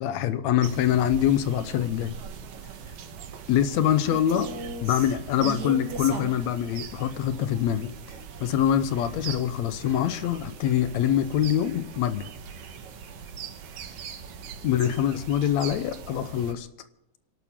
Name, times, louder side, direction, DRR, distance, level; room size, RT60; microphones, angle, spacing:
voice 1, 0.0-2.2 3.5-4.5 4.8-7.9 8.4-12.3 14.6-16.7, left 10 dB, 70° left, 11 dB, 1.9 m, -24 dB
sound 1, 0.6-16.5, right 7 dB, 75° right, 2.9 m, -41 dB
sound 2, 3.1-13.5 13.8-14.0 14.5-15.2 15.6-15.7 16.0-16.4, right 4 dB, 55° right, 1.2 m, -41 dB
27.5 x 12.0 x 3.7 m, 0.86 s
omnidirectional pair, 3.8 m